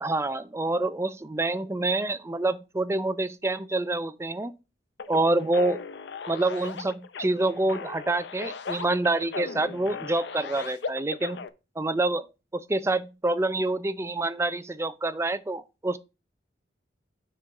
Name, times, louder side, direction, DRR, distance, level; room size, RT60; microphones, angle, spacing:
voice 1, 0.0-4.5 5.1-5.8 6.3-11.4 11.8-12.3 12.5-16.0, right 2 dB, 15° right, 0.4 m, -27 dB
sound 1, 5.0-11.5, left 5 dB, 75° left, 0.5 m, -38 dB
6.6 x 5.2 x 4.6 m
head